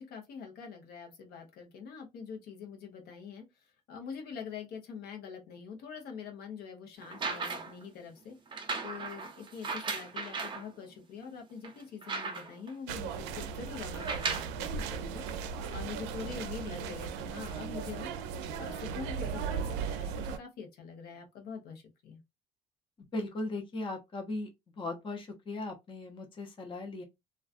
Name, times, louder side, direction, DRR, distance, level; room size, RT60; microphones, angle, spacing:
voice 1, 0.0-3.4 3.9-8.4 8.8-15.2 15.7-18.1 18.6-22.2, left 6 dB, 65° left, 0.8 m, -44 dB
sound 1, 7.0-7.8 8.5-10.7 11.2-11.3 11.6-12.7 13.9-14.6 15.5-15.6, right 4 dB, 30° right, 0.7 m, -36 dB
sound 2, 12.9-20.4, right 6 dB, 85° right, 0.4 m, -37 dB
voice 2, 23.1-24.5 24.8-27.0, left 2 dB, 30° left, 0.8 m, -37 dB
2.4 x 2.3 x 2.4 m
cardioid pair, 105°, 17 cm